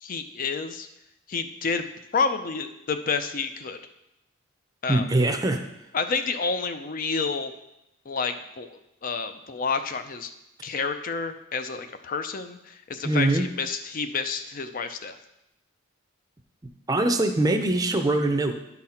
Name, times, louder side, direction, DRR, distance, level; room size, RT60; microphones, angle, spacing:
voice 1, 0.0-0.9 1.3-1.8 2.1-3.8 4.8-5.1 5.9-7.5 8.1-10.3 10.6-15.2, left 5 dB, 40° left, 9 dB, 0.5 m, -29 dB
voice 2, 4.9-5.6 13.0-13.5 16.9-18.6, right 2 dB, 20° right, 5 dB, 0.6 m, -22 dB
10.5 x 4.0 x 4.3 m, 0.87 s
head